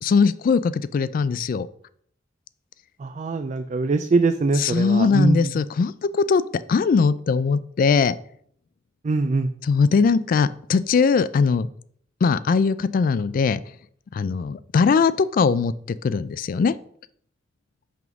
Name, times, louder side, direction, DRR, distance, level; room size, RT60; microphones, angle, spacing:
voice 1, 0.0-1.7 4.6-6.4 6.7-8.1 9.7-11.7 12.2-13.6 14.1-16.7, left 5 dB, 50° left, 16 dB, 0.3 m, -20 dB
voice 2, 3.0-5.6 9.0-9.5, right 3 dB, 40° right, 9 dB, 0.4 m, -22 dB
6.0 x 3.6 x 6.0 m, 0.64 s
head